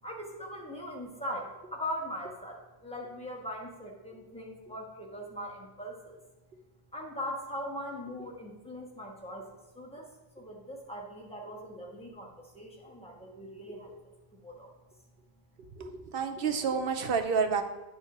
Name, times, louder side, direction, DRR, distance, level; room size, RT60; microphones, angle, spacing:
voice 1, 0.0-6.2 6.9-10.1 10.3-13.9 14.3-14.7, equal, 5° left, -2 dB, 1.4 m, -40 dB
voice 2, 15.8-17.6, right 5 dB, 65° right, 6 dB, 0.9 m, -29 dB
9.8 x 3.7 x 5.9 m, 1.1 s
omnidirectional pair, 1.1 m